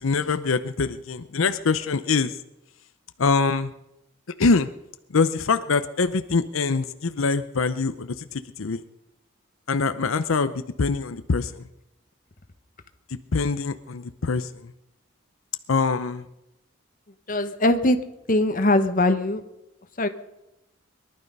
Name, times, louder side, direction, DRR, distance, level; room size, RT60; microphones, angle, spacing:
voice 1, 0.0-2.3 3.2-3.7 4.4-4.7 5.1-8.8 9.7-11.6 13.3-14.5 15.7-16.2, left 4 dB, 90° left, 11 dB, 0.7 m, -24 dB
voice 2, 17.3-18.0 18.3-19.4 20.0-20.1, left 1 dB, 45° left, 8 dB, 1.2 m, -21 dB
22.0 x 12.0 x 5.4 m, 0.90 s
head